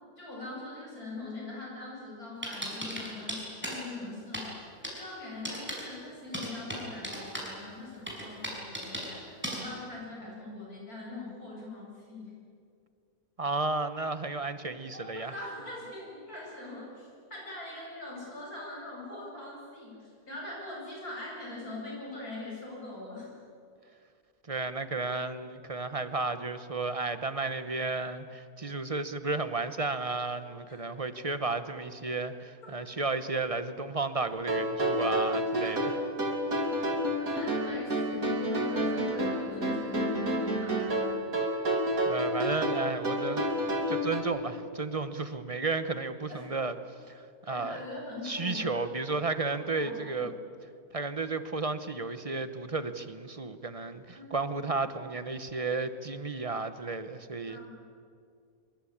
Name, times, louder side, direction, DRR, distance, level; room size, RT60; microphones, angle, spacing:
voice 1, 0.2-4.5 4.9-12.3 14.9-23.3 35.8-35.9 37.2-40.8 46.3-46.4 47.5-49.2 49.8-50.3 54.1-54.5 57.5-57.7, left 2 dB, 75° left, -3 dB, 8.8 m, -42 dB
sound 1, 2.4-3.8 4.3-4.5 4.8-5.0 5.4-5.8 6.3-7.5 8.1-9.1 9.4-9.6, equal, 5° right, 5.9 m, -35 dB
voice 2, 13.4-15.3 24.5-35.9 41.4-41.7 42.0-43.5 43.9-46.8 47.1-47.8 48.2-50.3 50.9-57.6, right 3 dB, 25° right, 11 dB, 1.0 m, -33 dB
sound 2, 34.2-44.2, right 1 dB, 70° right, 3.2 m, -29 dB
24.5 x 23.5 x 8.8 m, 2.4 s
omnidirectional pair, 1.6 m